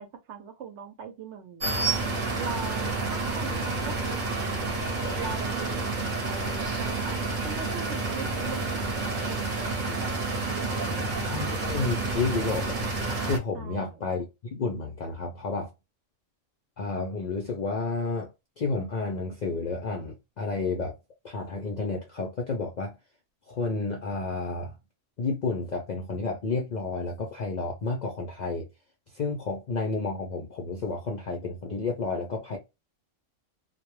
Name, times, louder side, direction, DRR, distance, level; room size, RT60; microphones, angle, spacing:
voice 1, 0.0-1.9 2.4-4.8 5.2-7.2 7.4-11.2 13.5-14.0, right 6 dB, 70° right, 0.9 m, -41 dB
sound 1, 1.6-13.4, right 3 dB, 45° right, 0.8 m, -29 dB
voice 2, 11.2-15.7 16.8-18.3 18.6-20.9 21.2-23.0 23.5-24.8 25.2-28.7 29.1-32.6, left 3 dB, 60° left, 0.4 m, -31 dB
2.2 x 2.0 x 3.0 m
omnidirectional pair, 1.3 m